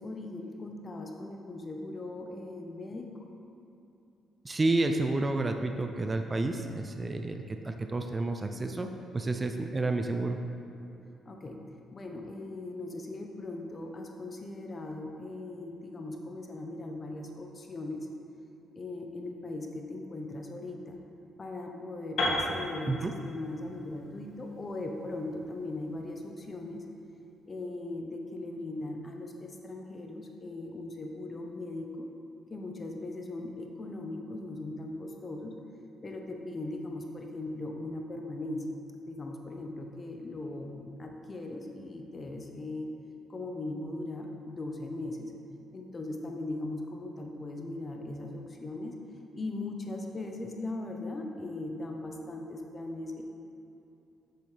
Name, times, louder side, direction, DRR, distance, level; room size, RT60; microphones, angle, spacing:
voice 1, 0.0-3.1 11.2-11.6 11.9-18.1 18.7-21.0 21.4-23.0 23.3-26.8 27.5-32.1 32.5-35.5 36.0-38.6 39.1-42.9 43.3-45.3 45.7-48.9 49.3-53.2, left 2 dB, 35° left, 2 dB, 0.9 m, -39 dB
voice 2, 4.4-8.9 9.1-10.4 22.9-23.1, right 2 dB, 25° right, 5 dB, 0.4 m, -30 dB
Piano, 22.2-26.1, left 1 dB, 65° left, 1.6 m, -34 dB
7.8 x 6.9 x 3.3 m, 2.9 s
cardioid pair, 90°, 0 cm